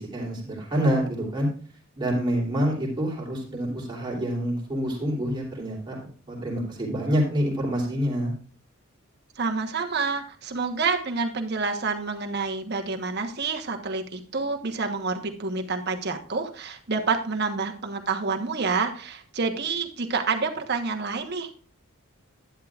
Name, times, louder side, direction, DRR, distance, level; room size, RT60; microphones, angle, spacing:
voice 1, 0.0-1.5 2.0-6.0 6.3-8.3, equal, 20° right, -2 dB, 3.1 m, -27 dB
voice 2, 9.4-21.6, right 4 dB, 50° right, 4 dB, 1.1 m, -28 dB
11.5 x 10.5 x 2.4 m, 0.41 s
head